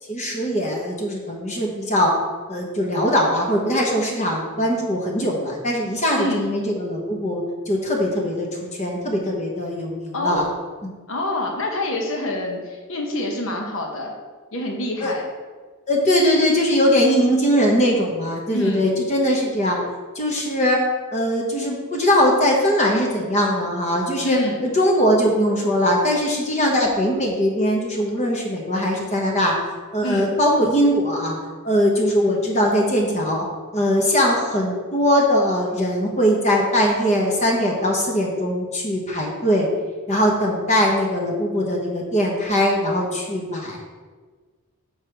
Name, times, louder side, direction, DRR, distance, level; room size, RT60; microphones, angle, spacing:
voice 1, 0.1-2.1 2.5-8.5 8.8-10.5 15.0-15.1 15.9-19.8 20.1-20.8 21.1-29.6 29.9-31.3 31.6-33.5 33.7-39.7 40.1-43.9, equal, 30° left, -1 dB, 1.0 m, -21 dB
voice 2, 10.1-10.5 11.1-14.1 14.5-15.3 18.5-18.9 24.2-24.6 30.0-30.3, left 1 dB, 60° left, 2 dB, 1.1 m, -26 dB
7.1 x 4.8 x 4.6 m, 1.4 s
head